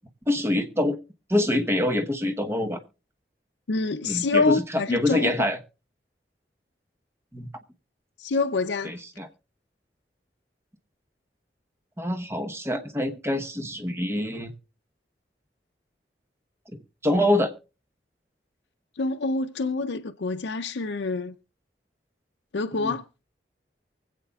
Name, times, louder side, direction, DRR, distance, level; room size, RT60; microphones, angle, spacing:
voice 1, 0.3-1.0 1.3-2.8 4.0-5.6 7.3-7.5 8.8-9.3 12.0-14.5 17.0-17.5 22.7-22.9, left 1 dB, 15° right, 1.0 m, -25 dB
voice 2, 3.7-5.3 8.2-9.0 19.0-21.3 22.5-23.1, left 3 dB, 85° left, 0.6 m, -26 dB
24.0 x 8.3 x 2.4 m
head